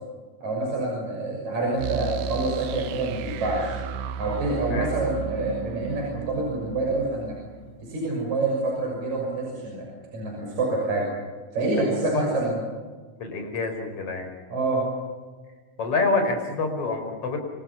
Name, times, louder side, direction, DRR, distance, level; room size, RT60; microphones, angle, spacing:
voice 1, 0.4-3.7 4.2-7.4 7.8-9.9 10.1-11.1 11.5-12.6 14.5-14.8, right 2 dB, 50° right, -1 dB, 7.7 m, -27 dB
sound 1, 1.8-8.6, right 6 dB, 90° right, 3.0 m, -35 dB
voice 2, 13.2-14.3 15.8-17.4, left 3 dB, 40° left, 5 dB, 5.6 m, -27 dB
28.0 x 27.5 x 5.9 m, 1.4 s
omnidirectional pair, 4.2 m